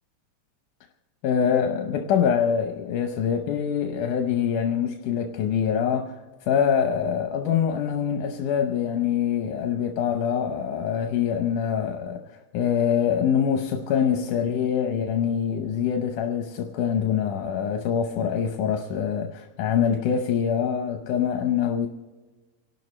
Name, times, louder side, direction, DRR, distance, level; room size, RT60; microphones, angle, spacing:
voice 1, 1.2-6.2 6.5-12.2 12.5-21.9, left 8 dB, 80° left, 2.4 m, -24 dB
28.0 x 12.0 x 3.2 m
omnidirectional pair, 3.6 m